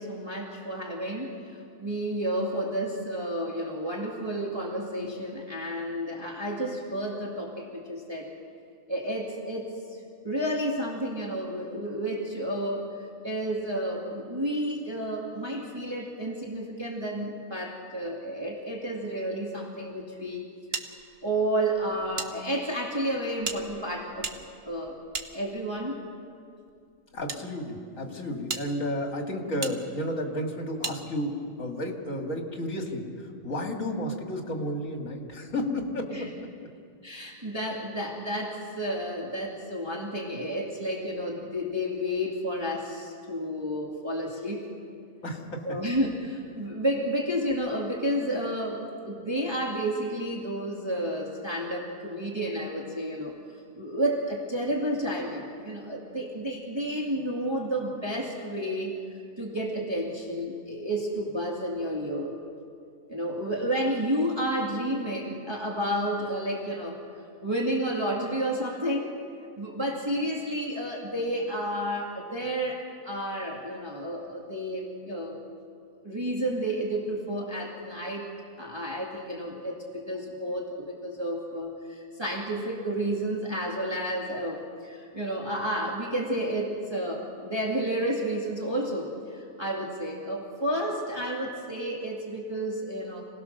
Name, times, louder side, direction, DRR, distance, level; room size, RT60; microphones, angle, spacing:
voice 1, 0.0-8.3 8.9-10.0 10.2-20.5 21.2-24.3 24.6-25.0 25.3-26.0 36.1-36.3 37.0-44.7 45.6-53.3 53.8-59.0 59.4-62.3 63.1-67.0 67.4-69.2 69.6-75.4 76.0-78.3 78.6-93.2, right 1 dB, 20° right, -2 dB, 2.3 m, -31 dB
sound 1, 20.7-22.3 22.6-22.7 23.4-25.9 26.7-27.4 28.0-28.1 28.5-28.7 29.6-29.8 30.8-31.0, right 4 dB, 45° right, 1.4 m, -36 dB
voice 2, 27.1-36.3 45.2-45.7, left 1 dB, 65° left, 2 dB, 2.7 m, -32 dB
27.0 x 18.5 x 6.7 m, 2.4 s
omnidirectional pair, 1.5 m